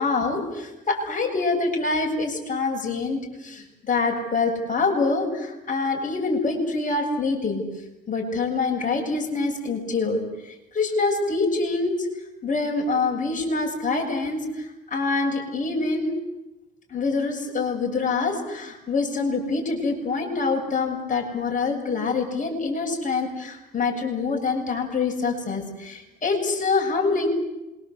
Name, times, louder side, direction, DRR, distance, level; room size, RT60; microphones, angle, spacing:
voice 1, 0.0-7.6 8.1-10.2 10.7-12.1 12.4-16.1 16.9-27.3, left 3 dB, 40° left, 2 dB, 8.0 m, -25 dB
26.5 x 24.0 x 8.2 m, 0.96 s
cardioid pair, 90°, 20 cm